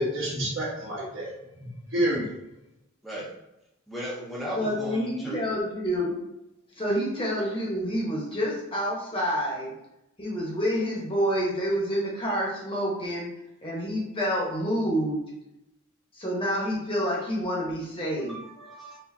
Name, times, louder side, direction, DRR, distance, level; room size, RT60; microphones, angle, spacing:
voice 1, 0.0-1.3 1.6-2.4, right 1 dB, 60° right, -4 dB, 1.3 m, -28 dB
voice 2, 3.9-5.4 18.2-19.0, equal, ahead, -8 dB, 0.9 m, -36 dB
voice 3, 4.5-6.2 6.7-9.7 10.2-13.3 13.6-15.2 16.1-18.4, equal, 25° left, -4 dB, 1.2 m, -28 dB
4.2 x 3.8 x 2.8 m, 0.88 s
head